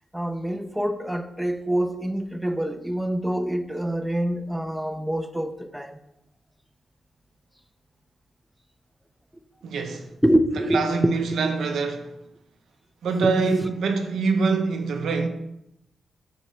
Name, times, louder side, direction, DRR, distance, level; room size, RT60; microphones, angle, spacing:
voice 1, 0.1-6.0 10.2-11.1, right 1 dB, 5° right, 0.3 m, -25 dB
voice 2, 9.6-10.1 10.7-12.1 13.0-15.3, right 4 dB, 85° right, 0.5 m, -24 dB
4.1 x 2.7 x 4.7 m
cardioid pair, 70°, 0 cm